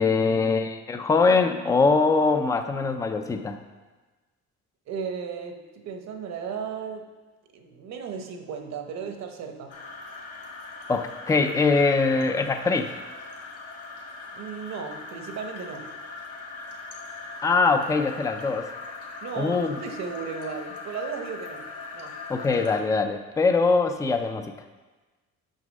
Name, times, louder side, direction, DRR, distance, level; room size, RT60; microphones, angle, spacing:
voice 1, 0.0-3.6 10.9-13.0 17.4-18.7 19.3-19.8 22.3-24.5, left 4 dB, 10° left, 7 dB, 0.4 m, -22 dB
voice 2, 4.9-7.1 7.5-9.7 14.3-15.9 19.2-21.7 21.9-22.1, right 6 dB, 60° right, 5 dB, 0.9 m, -35 dB
sound 1, 9.7-22.8, left 3 dB, 50° left, 1.4 m, -40 dB
6.4 x 6.0 x 5.2 m, 1.3 s
cardioid pair, 140°, 31 cm